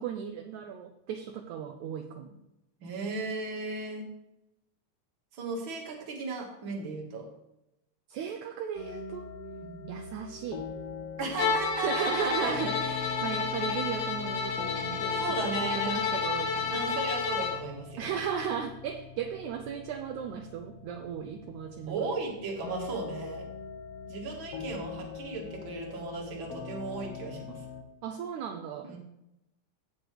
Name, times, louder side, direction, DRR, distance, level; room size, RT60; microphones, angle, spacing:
voice 1, 0.0-2.4 8.1-9.3 9.9-10.7 11.8-17.0 18.0-22.1 28.0-28.9, right 8 dB, 75° right, 5 dB, 1.9 m, -36 dB
voice 2, 2.8-4.1 5.3-7.3 9.6-9.9 11.2-12.5 15.1-16.0 16.7-18.1 21.9-23.5 24.1-27.6 28.8-29.0, right 3 dB, 45° right, 0 dB, 2.2 m, -36 dB
sound 1, 8.8-27.8, left 6 dB, 65° left, 1.7 m, -42 dB
Bowed string instrument, 11.4-17.6, left 5 dB, 80° left, 2.8 m, -31 dB
16.0 x 6.3 x 3.4 m, 0.86 s
omnidirectional pair, 3.8 m